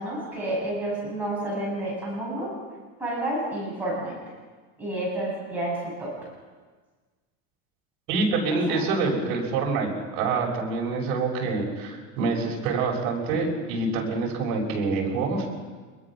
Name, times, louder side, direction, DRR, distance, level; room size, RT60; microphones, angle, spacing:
voice 1, 0.0-2.5 3.0-4.2 4.8-6.1 8.5-8.8, right 1 dB, 5° right, -7 dB, 7.6 m, -30 dB
voice 2, 8.1-15.5, right 3 dB, 55° right, -1 dB, 6.5 m, -26 dB
25.0 x 22.0 x 6.3 m, 1.4 s
supercardioid pair, 170°, 43 cm